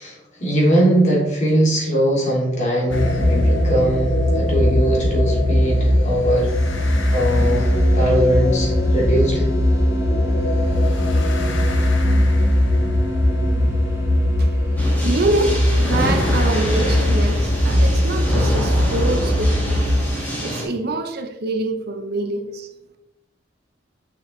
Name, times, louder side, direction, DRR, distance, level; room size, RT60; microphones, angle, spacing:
voice 1, 0.0-6.8 7.1-9.4, right 1 dB, 40° left, 2.6 m, -20 dB
sound 1, 2.9-20.1, left 1 dB, 70° left, 1.0 m, -19 dB
sound 2, 6.4-16.1, equal, 15° right, 1.0 m, -32 dB
sound 3, 14.8-20.6, equal, 10° left, 1.8 m, -27 dB
voice 2, 15.0-19.8 20.4-22.7, right 2 dB, 55° right, 0.7 m, -25 dB
6.8 x 5.9 x 3.2 m
head